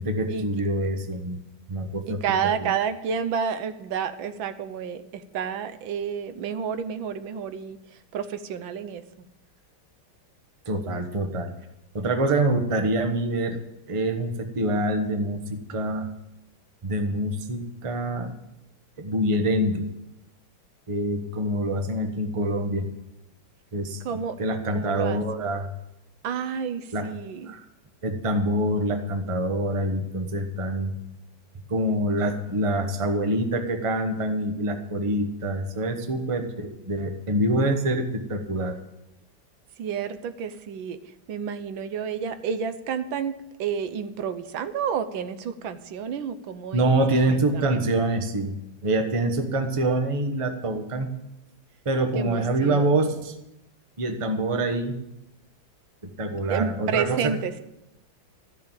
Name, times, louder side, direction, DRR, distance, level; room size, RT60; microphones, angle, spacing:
voice 1, 0.0-1.4 1.7-2.2 2.6-2.7 10.6-11.5 11.9-13.6 13.9-16.1 16.8-18.3 19.0-19.9 20.9-22.9 23.7-25.7 26.9-27.1 27.5-27.6 28.0-31.0 31.7-38.8 46.7-51.1 51.8-53.3 54.0-55.0 56.0-57.4, right 1 dB, 20° right, 6 dB, 0.9 m, -25 dB
voice 2, 2.1-9.0 24.0-24.4 24.7-25.2 26.2-27.5 39.8-41.0 41.3-46.9 47.3-47.8 52.1-53.0 56.4-57.6, right 7 dB, 80° right, 11 dB, 1.6 m, -30 dB
14.0 x 6.6 x 8.9 m, 0.89 s
omnidirectional pair, 2.1 m